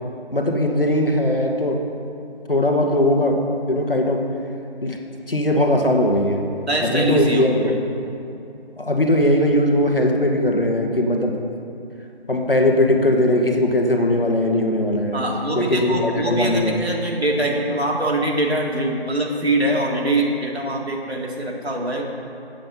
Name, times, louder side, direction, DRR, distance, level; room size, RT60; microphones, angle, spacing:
voice 1, 0.3-1.8 2.5-3.4 3.7-4.2 4.8-5.0 5.3-6.4 6.8-7.6 8.8-11.3 12.3-15.2 15.5-16.7, left 1 dB, 60° left, 2 dB, 1.2 m, -19 dB
voice 2, 6.7-7.8 15.1-22.0, right 1 dB, 80° right, -1 dB, 1.8 m, -23 dB
7.6 x 7.4 x 5.6 m, 2.7 s
figure-of-eight pair, 180°, 32 cm